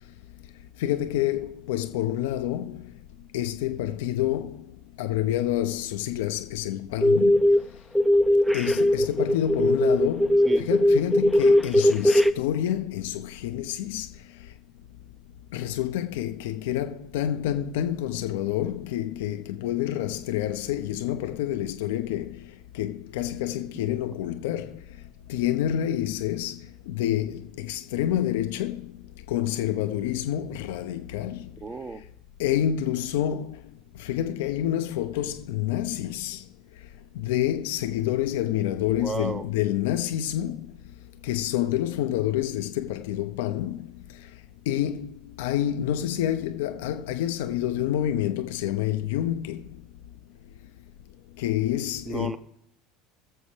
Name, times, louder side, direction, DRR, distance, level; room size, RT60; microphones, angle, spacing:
voice 1, 0.8-2.9 3.3-4.7 5.0-7.4 8.5-14.1 15.5-22.4 22.7-24.8 25.3-28.9 29.3-31.5 32.4-33.6 34.0-36.4 37.1-40.7 41.2-43.9 44.7-49.6 51.4-52.4, left 12 dB, 70° left, 0.6 m, -28 dB
sound 1, 7.0-7.6 7.9-12.3, left 1 dB, ahead, 0.7 m, -19 dB
voice 2, 31.6-32.0 39.0-39.4 52.1-52.4, right 3 dB, 25° right, 1.1 m, -32 dB
21.0 x 7.2 x 3.3 m
hypercardioid pair, 75°, 0 cm